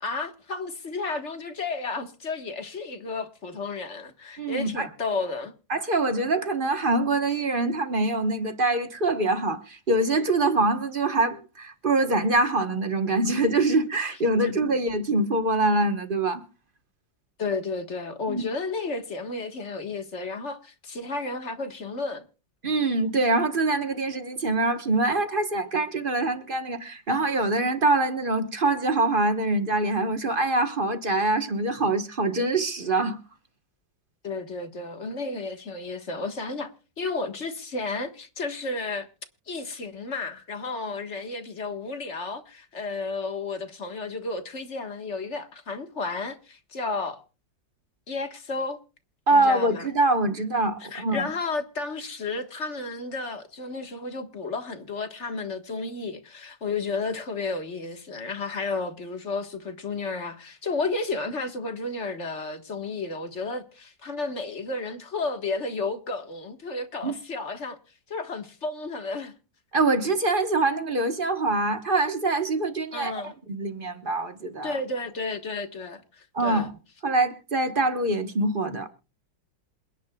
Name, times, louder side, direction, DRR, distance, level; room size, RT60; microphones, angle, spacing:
voice 1, 0.0-5.5 14.4-14.6 17.4-22.3 34.2-36.7 37.0-39.1 39.5-47.2 48.1-48.8 49.3-49.9 50.8-67.8 68.1-69.3 72.9-73.3 74.6-76.7, left 3 dB, 40° left, 1.7 m, -32 dB
voice 2, 4.4-4.9 5.7-16.4 18.3-18.4 22.6-33.2 49.3-51.3 67.0-67.1 69.7-73.1 73.5-74.7 76.3-76.7 77.0-78.9, right 2 dB, 35° right, 1.2 m, -24 dB
27.5 x 10.0 x 2.3 m
omnidirectional pair, 2.0 m